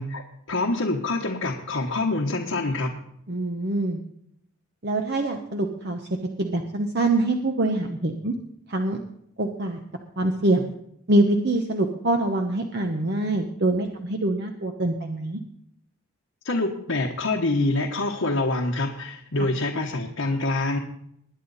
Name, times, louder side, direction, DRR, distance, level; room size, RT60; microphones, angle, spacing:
voice 1, 0.0-2.9 16.4-20.8, left 2 dB, 70° left, -1 dB, 1.2 m, -26 dB
voice 2, 3.3-4.0 4.8-6.0 6.4-8.3 8.7-9.0 9.4-9.8 10.2-10.7 11.1-15.4 19.4-19.5, right 2 dB, 50° right, 4 dB, 1.0 m, -24 dB
20.5 x 9.8 x 4.2 m, 0.74 s
head